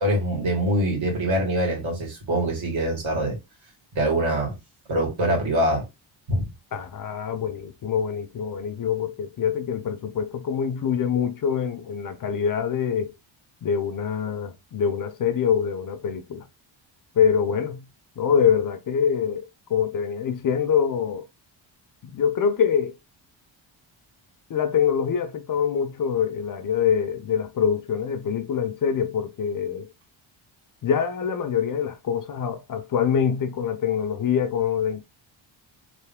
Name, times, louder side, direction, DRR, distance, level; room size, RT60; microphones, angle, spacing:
voice 1, 0.0-3.4 4.0-4.6 4.9-5.9 6.3-6.5, right 1 dB, 70° right, 2.1 m, -24 dB
voice 2, 6.7-13.1 13.6-16.4 17.2-17.8 18.2-19.4 19.7-21.2 22.0-23.0 24.5-29.9 30.8-35.0, left 7 dB, 45° left, 0.5 m, -24 dB
3.4 x 2.6 x 3.5 m
wide cardioid pair, 170°, 48 cm